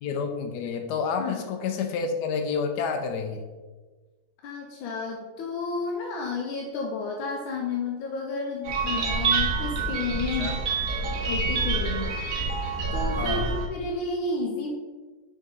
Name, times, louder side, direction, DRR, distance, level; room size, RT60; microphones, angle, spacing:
voice 1, 0.0-3.4 10.4-10.6 13.2-13.5, left 5 dB, 75° left, 4 dB, 1.0 m, -29 dB
voice 2, 4.4-10.5 11.2-12.1 12.9-14.7, left 3 dB, 90° left, 0 dB, 1.5 m, -31 dB
sound 1, 8.6-13.7, right 4 dB, 55° right, 1.1 m, -27 dB
6.4 x 3.9 x 3.8 m, 1.3 s
omnidirectional pair, 2.1 m